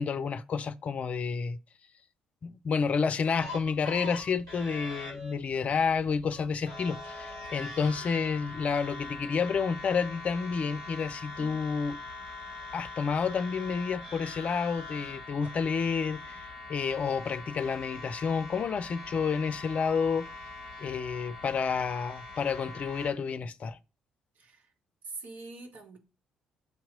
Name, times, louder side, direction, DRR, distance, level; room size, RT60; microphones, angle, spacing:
voice 1, 0.0-1.6 2.4-12.0 12.7-20.3 20.8-23.8, left 5 dB, 40° left, 0.5 m, -30 dB
sound 1, 3.2-23.1, left 3 dB, 85° right, 1.7 m, -43 dB
voice 2, 24.3-24.7 25.0-26.0, right 3 dB, 50° right, 1.4 m, -44 dB
8.0 x 3.0 x 5.0 m
figure-of-eight pair, 45°, 3 cm